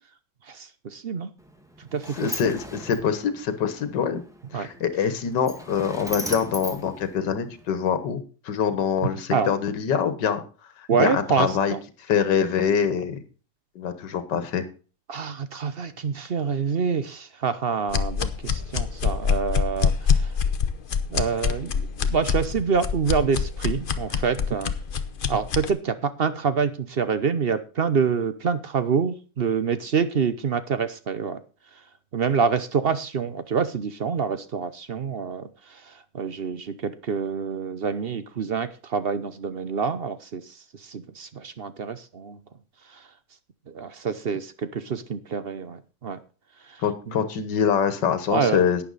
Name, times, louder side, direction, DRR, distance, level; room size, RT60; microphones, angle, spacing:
voice 1, 0.5-1.3 1.8-2.4 4.5-4.7 9.3-9.5 10.9-11.8 15.1-20.3 21.1-24.7 25.3-31.4 32.1-42.4 42.9-43.1 43.7-46.2 46.7-46.8 48.3-48.7, right 6 dB, 50° right, 12 dB, 0.7 m, -27 dB
Sliding door, 1.4-7.8, equal, ahead, 1.4 m, -39 dB
voice 2, 2.2-4.2 4.5-10.4 10.8-11.7 12.1-13.2 13.8-14.7 46.8-48.8, left 7 dB, 75° left, 11 dB, 1.9 m, -24 dB
sound 1, 17.9-25.7, left 6 dB, 45° left, 0.7 m, -25 dB
11.5 x 9.9 x 4.1 m, 0.36 s
omnidirectional pair, 1.9 m